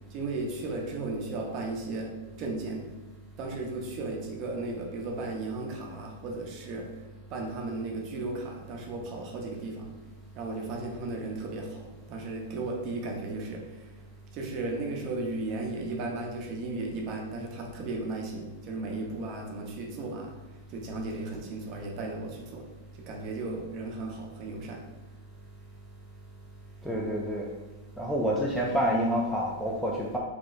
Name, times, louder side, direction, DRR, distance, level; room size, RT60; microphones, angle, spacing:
voice 1, 0.1-2.9 3.4-6.9 7.3-9.9 10.3-14.0 14.3-22.6 22.9-24.8, right 2 dB, 35° right, 0 dB, 0.7 m, -35 dB
voice 2, 26.8-27.5 28.0-30.2, equal, ahead, -4 dB, 0.3 m, -28 dB
4.0 x 2.8 x 2.5 m, 1.2 s
supercardioid pair, 160°, 0 cm